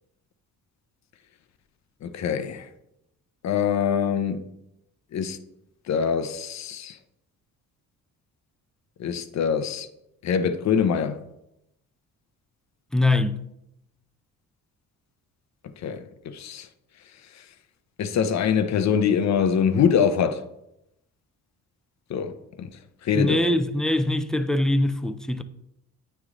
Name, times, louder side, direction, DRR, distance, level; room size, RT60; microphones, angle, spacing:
voice 1, 2.0-2.7 3.4-4.4 5.1-5.4 5.9-7.0 9.0-9.9 10.2-11.2 15.8-16.7 18.0-20.4 22.1-22.3 22.6-22.7 23.0-23.5, left 7 dB, 55° left, 0.6 m, -24 dB
voice 2, 12.9-13.4 23.1-25.4, left 1 dB, ahead, 0.3 m, -23 dB
9.0 x 3.2 x 3.7 m
cardioid pair, 90°, 34 cm